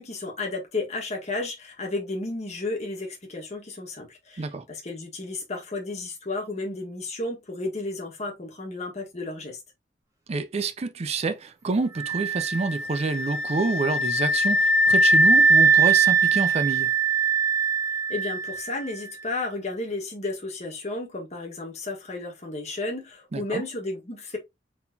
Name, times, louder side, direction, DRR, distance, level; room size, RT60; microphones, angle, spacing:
voice 1, 0.0-9.6 18.1-24.4, left 2 dB, 40° left, 1.4 m, -33 dB
voice 2, 10.3-16.9 23.3-23.6, right 3 dB, 35° right, 0.4 m, -27 dB
sound 1, 12.0-18.8, right 3 dB, 20° right, 1.2 m, -21 dB
4.0 x 3.9 x 2.7 m
head